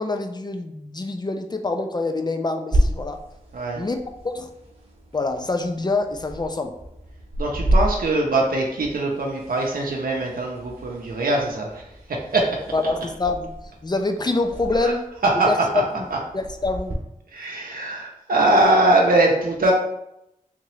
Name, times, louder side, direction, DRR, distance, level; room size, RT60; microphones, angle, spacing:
voice 1, 0.0-3.2 3.8-4.0 4.2-4.5 5.1-6.7 12.7-13.5 13.8-15.0 15.4-16.0 16.3-17.0, left 3 dB, 30° left, 5 dB, 0.3 m, -25 dB
sound 1, 2.7-16.9, equal, 45° right, 0.8 m, -30 dB
voice 2, 7.4-12.9 14.8-14.9 15.2-15.8 16.1-16.2 17.3-19.7, right 2 dB, 85° right, -1 dB, 0.5 m, -22 dB
3.6 x 2.8 x 3.1 m, 0.84 s
wide cardioid pair, 95°, 14 cm